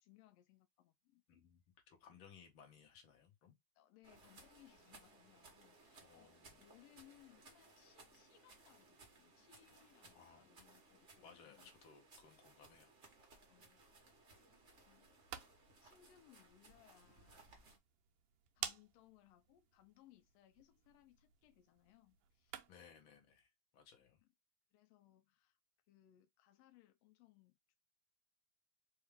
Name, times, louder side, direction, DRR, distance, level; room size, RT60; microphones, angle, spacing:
voice 1, 0.0-1.2 3.7-11.7 13.5-14.4 14.8-15.1 15.8-17.5 18.5-22.6 24.2-24.3 24.7-25.6 25.9-27.8, left 13 dB, 85° left, 1.4 m, -68 dB
voice 2, 1.3-1.6 1.9-3.5 6.0-6.6 10.1-10.5 11.2-12.9 22.7-24.2, left 6 dB, 55° left, 1.5 m, -62 dB
sound 1, 4.0-17.8, right 3 dB, 55° right, 0.7 m, -64 dB
sound 2, 15.0-23.0, right 10 dB, 80° right, 1.7 m, -53 dB
4.7 x 2.7 x 3.4 m
omnidirectional pair, 3.5 m